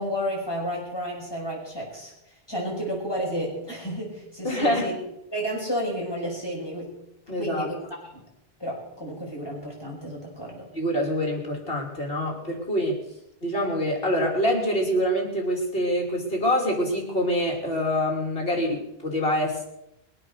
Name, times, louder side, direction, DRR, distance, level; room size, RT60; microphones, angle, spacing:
voice 1, 0.0-2.1 2.5-4.9 5.3-6.9 7.4-7.8 8.1-8.2 8.6-10.7, equal, 25° left, -3 dB, 6.1 m, -31 dB
voice 2, 4.4-4.9 7.3-7.7 10.7-13.0 13.4-19.6, equal, 65° left, 1 dB, 3.5 m, -25 dB
21.5 x 8.6 x 6.7 m, 0.84 s
omnidirectional pair, 1.0 m